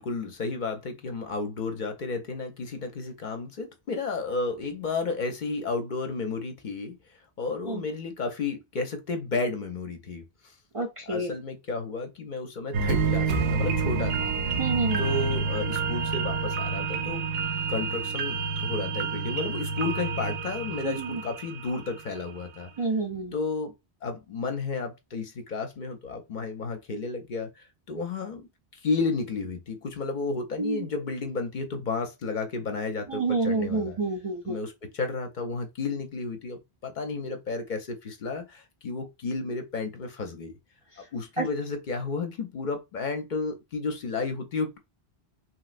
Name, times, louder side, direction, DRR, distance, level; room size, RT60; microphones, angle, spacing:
voice 1, 0.0-7.0 7.4-10.2 11.1-14.3 15.0-17.2 17.7-22.7 23.3-23.7 24.0-27.5 27.9-28.5 28.8-34.0 34.4-40.5 41.1-44.8, left 4 dB, 55° left, 0.6 m, -32 dB
voice 2, 10.7-11.3 14.6-15.0 20.8-21.2 22.8-23.3 30.6-30.8 33.1-34.6 41.4-41.5, right 3 dB, 45° right, 0.4 m, -28 dB
sound 1, 12.7-22.1 22.5-22.6, right 4 dB, 80° right, 0.8 m, -28 dB
3.0 x 2.9 x 2.4 m
omnidirectional pair, 1.1 m